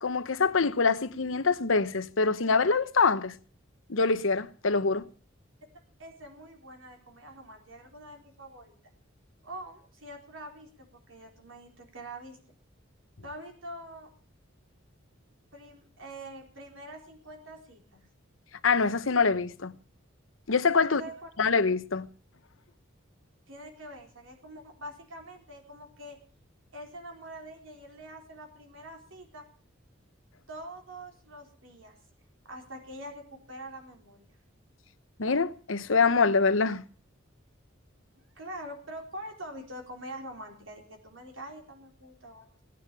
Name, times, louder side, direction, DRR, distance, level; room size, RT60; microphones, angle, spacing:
voice 1, 0.0-3.4 3.9-5.0 18.6-19.7 20.5-21.0 21.4-22.1 35.2-36.8, left 4 dB, 90° left, 1.0 m, -25 dB
voice 2, 6.0-8.8 9.4-12.4 13.2-14.1 15.5-18.0 20.8-21.3 23.5-26.2 26.7-29.5 30.5-32.0 32.4-34.3 38.3-42.5, right 1 dB, 75° right, 4.1 m, -44 dB
18.0 x 9.6 x 6.8 m
head